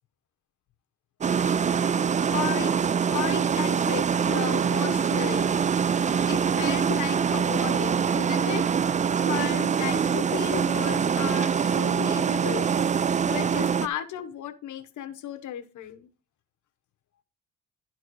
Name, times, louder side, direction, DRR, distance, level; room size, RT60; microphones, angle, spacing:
sound 1, 1.2-13.9, right 7 dB, 25° right, 0.4 m, -24 dB
voice 1, 2.3-2.8 3.1-5.6 6.3-8.6 9.2-16.1, left 10 dB, 75° left, 7 dB, 1.3 m, -35 dB
Laughter, 4.0-12.3, right 3 dB, 45° right, 3.5 m, -50 dB
11.5 x 4.6 x 4.7 m, 0.35 s
cardioid pair, 90°, 30 cm